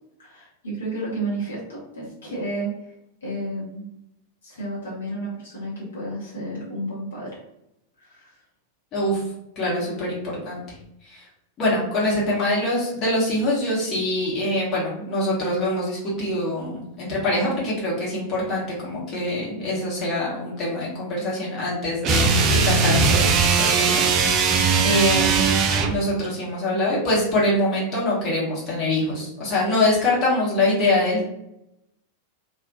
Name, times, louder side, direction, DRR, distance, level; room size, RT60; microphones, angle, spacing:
voice 1, 0.2-2.7 3.2-3.9 4.4-7.4 8.0-8.3, right 1 dB, 65° left, -6 dB, 1.0 m, -32 dB
voice 2, 9.6-10.6 11.1-11.2 11.6-24.5 24.8-25.5 25.9-31.2, left 1 dB, 30° left, -6 dB, 1.0 m, -24 dB
sound 1, 22.0-26.0, right 5 dB, 35° right, 0.3 m, -19 dB
2.5 x 2.3 x 2.5 m, 0.85 s
figure-of-eight pair, 90°, 0 cm